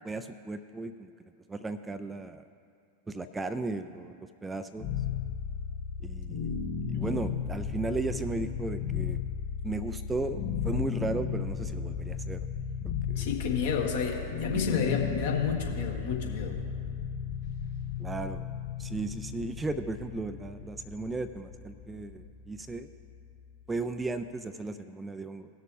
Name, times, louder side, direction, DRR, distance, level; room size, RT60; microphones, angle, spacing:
voice 1, 0.0-0.9 1.5-2.4 3.1-4.9 6.0-9.2 9.6-12.4 12.8-13.3 18.0-18.4 18.8-22.9 23.7-25.5, right 3 dB, 10° right, 10 dB, 0.4 m, -35 dB
sound 1, 4.8-23.8, left 7 dB, 30° left, 1.9 m, -35 dB
voice 2, 13.1-16.6, left 6 dB, 55° left, 0 dB, 1.6 m, -30 dB
18.5 x 6.6 x 3.4 m, 2.4 s
figure-of-eight pair, 90°, 0 cm